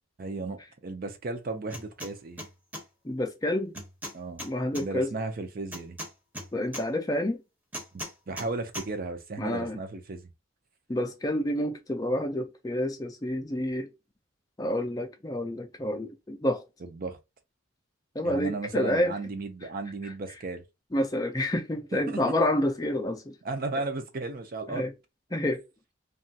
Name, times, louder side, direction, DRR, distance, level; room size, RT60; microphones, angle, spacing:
voice 1, 0.2-2.4 4.1-6.0 7.9-10.2 16.8-17.2 18.2-20.6 22.1-22.2 23.4-24.9, right 3 dB, 45° right, 0.5 m, -35 dB
sound 1, 1.7-2.1 2.4-2.8 3.7-4.8 5.7-6.8 7.7-8.5 8.7-8.9, equal, 10° right, 0.7 m, -38 dB
voice 2, 3.0-3.7 4.4-5.1 6.5-7.4 9.4-9.8 10.9-13.9 14.6-16.6 18.2-19.1 20.0-20.1 20.9-23.3 24.7-24.9 25.3-25.6, left 1 dB, 15° left, 0.4 m, -28 dB
3.0 x 2.3 x 2.7 m
head